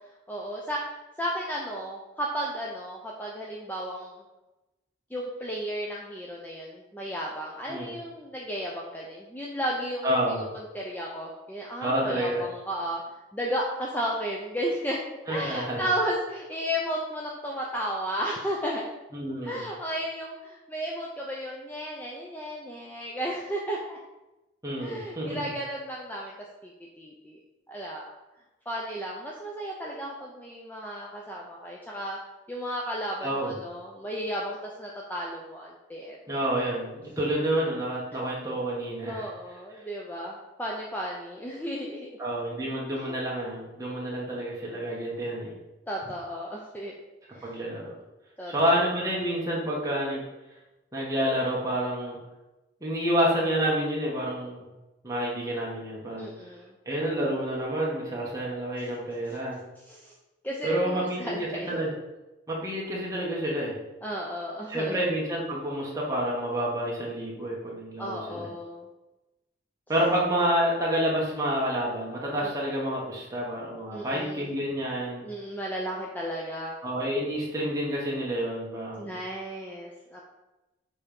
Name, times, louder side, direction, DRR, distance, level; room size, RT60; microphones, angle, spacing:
voice 1, 0.3-4.2 5.1-15.0 15.3-18.8 19.4-24.0 24.8-26.3 26.6-26.7 27.0-27.4 27.7-28.1 28.7-32.2 32.5-36.2 39.0-42.1 45.9-46.9 47.3-47.6 48.4-48.7 56.2-56.7 59.9-60.1 60.4-61.7 64.0-65.0 68.0-68.9 72.4-72.5 73.9-74.5 75.2-76.8 79.0-80.2, equal, 10° left, -3 dB, 0.6 m, -34 dB
voice 2, 10.0-10.4 11.8-12.4 15.3-15.9 19.1-19.6 24.6-25.5 33.2-33.5 36.3-39.3 42.2-45.5 47.4-47.9 48.5-50.2 50.9-52.2 52.8-54.7 55.0-56.3 56.8-59.6 60.6-61.3 61.7-61.9 62.5-63.8 64.7-68.5 69.9-75.2 76.8-79.1, right 1 dB, 15° right, -5 dB, 1.7 m, -29 dB
6.9 x 3.5 x 5.3 m, 1.0 s
head